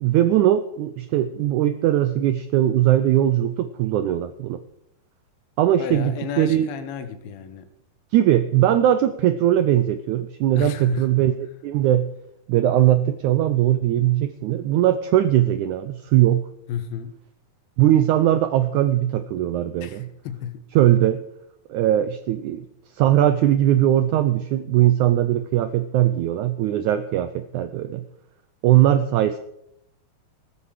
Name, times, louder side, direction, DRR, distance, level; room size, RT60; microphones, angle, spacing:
voice 1, 0.0-4.6 5.6-6.7 8.1-11.3 11.6-12.1 12.5-16.5 17.8-20.1 20.7-21.2 21.7-22.7 22.9-28.0 28.6-29.4, right 12 dB, 85° right, 1.7 m, -20 dB
voice 2, 5.8-7.7 10.5-11.1 16.7-17.2 19.8-20.6, left 8 dB, 80° left, 3.0 m, -32 dB
15.0 x 13.0 x 5.0 m
omnidirectional pair, 4.2 m